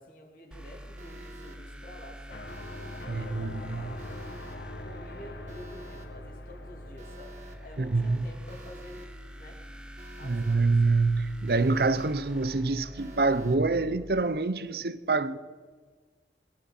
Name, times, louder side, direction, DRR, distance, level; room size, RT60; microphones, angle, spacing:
voice 1, 0.0-2.5 3.0-4.2 4.8-9.0 9.3-9.6 10.1-10.7, left 1 dB, 50° left, 3.1 m, -49 dB
sound 1, 0.5-14.2, equal, 5° right, 0.9 m, -45 dB
Alarm, 1.0-1.6 2.5-3.1 4.0-4.6 5.5-6.1 7.0-7.6 8.5-9.1 10.0-10.6 11.5-12.1 13.0-13.6, right 2 dB, 40° right, 1.7 m, -50 dB
sound 2, 2.3-9.0, left 2 dB, 70° left, 1.2 m, -44 dB
voice 2, 3.1-3.9 7.8-8.2 10.2-15.4, right 3 dB, 60° right, 0.7 m, -26 dB
22.0 x 12.0 x 5.5 m
head